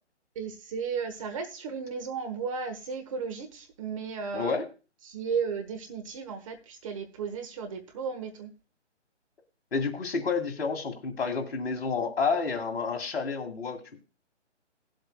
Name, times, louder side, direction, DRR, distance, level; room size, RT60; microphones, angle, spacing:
voice 1, 0.3-4.5 5.0-8.5, right 6 dB, 25° right, 6 dB, 1.2 m, -34 dB
voice 2, 4.3-4.6 9.7-14.0, left 5 dB, 55° left, 5 dB, 2.2 m, -30 dB
19.0 x 7.7 x 2.2 m, 0.32 s
figure-of-eight pair, 145°, 36 cm